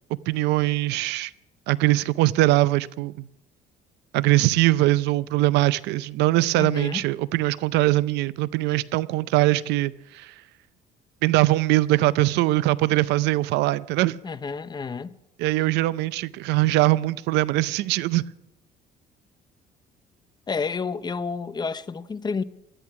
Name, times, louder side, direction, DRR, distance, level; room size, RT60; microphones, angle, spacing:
voice 1, 0.3-1.3 1.7-3.3 4.1-10.3 11.2-14.2 15.4-18.2, right 17 dB, 90° right, 0.5 m, -22 dB
voice 2, 6.6-7.0 14.2-15.1 20.5-22.4, left 5 dB, 25° left, 0.7 m, -30 dB
18.0 x 13.0 x 5.9 m
cardioid pair, 110°, 17 cm